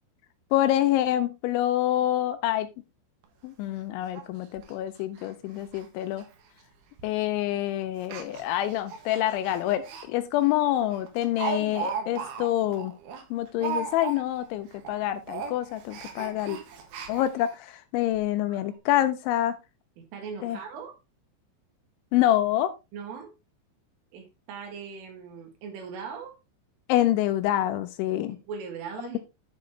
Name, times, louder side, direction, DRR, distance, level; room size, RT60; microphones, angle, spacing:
voice 1, 0.5-2.7 3.4-6.2 7.0-12.9 13.3-16.6 17.1-19.5 20.4-20.6 22.1-22.7 26.9-28.4, left 13 dB, 80° left, 11 dB, 2.8 m, -26 dB
Speech, 3.2-3.3 3.7-3.8 4.1-4.2 4.6-4.7 5.2-5.3 5.6-5.9 6.1-6.2 7.0-7.2 8.0-10.1 10.4-10.5 10.9-14.5 14.7-15.0 15.2-17.5 18.1-18.2 18.5-18.6, right 6 dB, 60° right, 3.1 m, -36 dB
voice 2, 20.0-21.0 22.9-23.3 24.1-26.4 28.3-29.2, right 6 dB, 75° right, 4 dB, 4.8 m, -39 dB
11.0 x 7.6 x 3.2 m, 0.25 s
omnidirectional pair, 5.7 m